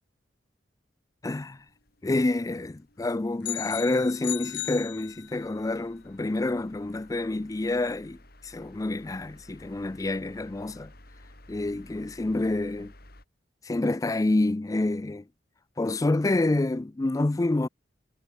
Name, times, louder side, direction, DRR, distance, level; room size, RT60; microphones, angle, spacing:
voice 1, 1.2-1.6 2.0-10.9 11.5-12.9 13.6-15.2 15.8-17.7, left 2 dB, 20° left, 0.4 m, -28 dB
sound 1, 1.3-13.2, left 1 dB, 55° left, 6.8 m, -54 dB
sound 2, 3.4-5.6, left 16 dB, 75° left, 0.5 m, -36 dB
head